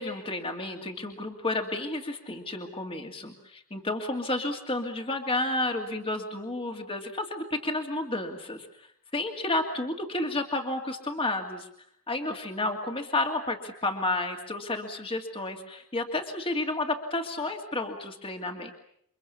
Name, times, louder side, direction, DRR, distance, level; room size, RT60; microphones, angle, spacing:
voice 1, 0.0-8.9 9.1-11.7 12.1-18.7, left 2 dB, 25° left, 3 dB, 2.5 m, -31 dB
29.5 x 24.0 x 7.1 m, 0.70 s
head